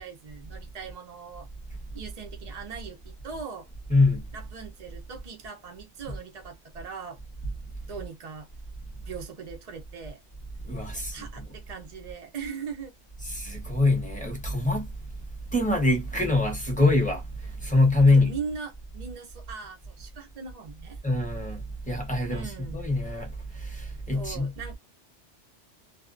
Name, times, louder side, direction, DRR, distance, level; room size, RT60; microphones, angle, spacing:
voice 1, 0.0-1.5 1.9-3.7 4.3-7.2 7.9-8.5 9.1-10.2 10.9-12.9 18.0-21.0 22.3-22.8 24.1-24.8, right 6 dB, 55° right, 0.4 m, -40 dB
voice 2, 3.9-4.3 10.6-11.5 13.3-14.9 15.5-18.3 21.0-24.5, left 2 dB, 10° left, 0.7 m, -24 dB
2.6 x 2.1 x 2.4 m
omnidirectional pair, 1.2 m